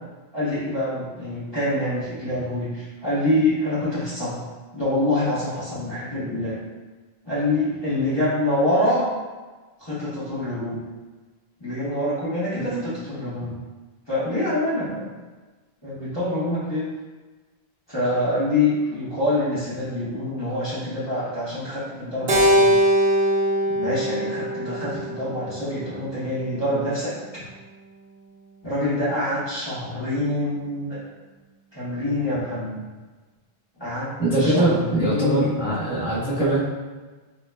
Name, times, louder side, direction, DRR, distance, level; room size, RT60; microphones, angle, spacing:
voice 1, 0.3-4.4 4.7-6.6 7.2-9.1 9.8-10.8 11.6-13.6 14.1-15.1 15.8-16.9 17.9-22.7 23.7-27.4 28.6-31.0 31.7-32.8 33.8-34.1 34.4-35.6, left 1 dB, 25° left, -13 dB, 1.1 m, -26 dB
Keyboard (musical), 22.3-26.7, equal, 70° right, 0.9 m, -22 dB
voice 2, 34.2-36.6, right 1 dB, 5° right, -13 dB, 1.1 m, -22 dB
3.8 x 2.9 x 2.2 m, 1.3 s
omnidirectional pair, 1.1 m